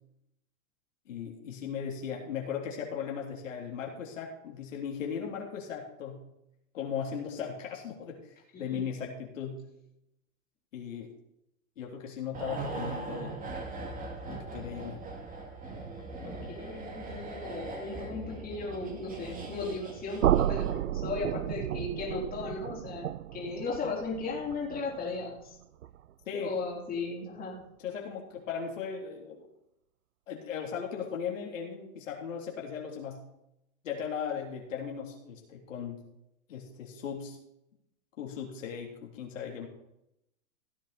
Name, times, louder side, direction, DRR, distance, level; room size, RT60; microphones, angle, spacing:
voice 1, 1.1-6.2 6.7-8.2 8.6-9.6 10.7-11.1 11.8-13.4 14.3-15.0 26.3-26.7 27.8-29.5 30.3-33.2 33.8-36.0 36.5-37.4 38.2-39.7, left 7 dB, 70° left, 0 dB, 3.5 m, -37 dB
sound 1, 12.3-20.9 21.2-21.3, right 3 dB, 20° right, 2.7 m, -40 dB
voice 2, 16.2-25.6 26.3-27.6, left 3 dB, 20° left, -3 dB, 4.0 m, -36 dB
sound 2, 20.2-26.1, right 12 dB, 85° right, 0.5 m, -32 dB
16.5 x 8.4 x 4.4 m, 0.81 s
hypercardioid pair, 115°, 39 cm